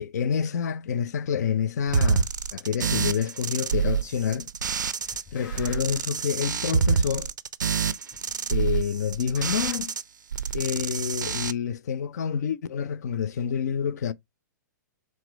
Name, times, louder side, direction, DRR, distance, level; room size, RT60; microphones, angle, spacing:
voice 1, 0.0-4.5 5.3-7.3 8.5-9.9 10.5-14.1, left 7 dB, 60° left, 0.4 m, -28 dB
sound 1, 1.9-5.2 5.5-10.0 10.3-11.5, right 6 dB, 80° right, 0.4 m, -27 dB
sound 2, 2.9-3.0 3.9-4.3 4.6-6.1 6.9-7.0 7.9-8.3 8.6-9.8, left 6 dB, 35° left, 1.9 m, -46 dB
5.8 x 2.1 x 3.2 m
figure-of-eight pair, 115°, 10 cm